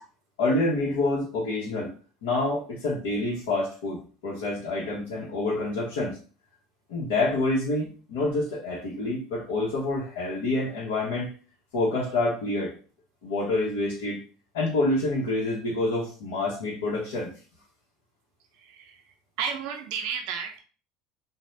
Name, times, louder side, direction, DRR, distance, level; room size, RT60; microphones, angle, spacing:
voice 1, 0.4-1.9 2.2-6.2 6.9-11.3 11.7-12.7 13.2-14.2 14.5-17.3, left 2 dB, 85° left, -6 dB, 0.8 m, -27 dB
voice 2, 19.4-20.6, right 6 dB, 70° right, 4 dB, 0.4 m, -31 dB
2.6 x 2.1 x 3.1 m, 0.38 s
supercardioid pair, 105°, 0 cm